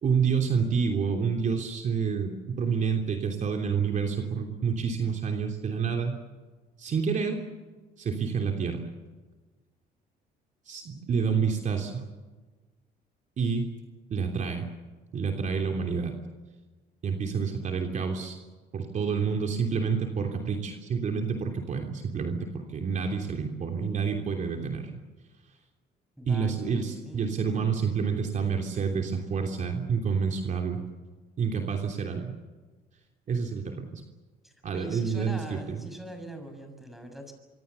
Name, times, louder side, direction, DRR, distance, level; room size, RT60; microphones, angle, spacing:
voice 1, 0.0-6.2 6.8-7.4 8.0-8.8 10.7-12.1 13.4-13.7 14.1-14.7 15.1-16.2 17.0-18.4 18.7-25.0 26.3-30.8 31.4-32.4 33.3-34.0 34.6-35.8, right 6 dB, 45° right, 3 dB, 3.1 m, -28 dB
voice 2, 26.2-27.2 34.4-37.3, equal, ahead, 6 dB, 6.6 m, -43 dB
25.5 x 24.0 x 7.0 m, 1.3 s
cardioid pair, 110°, 17 cm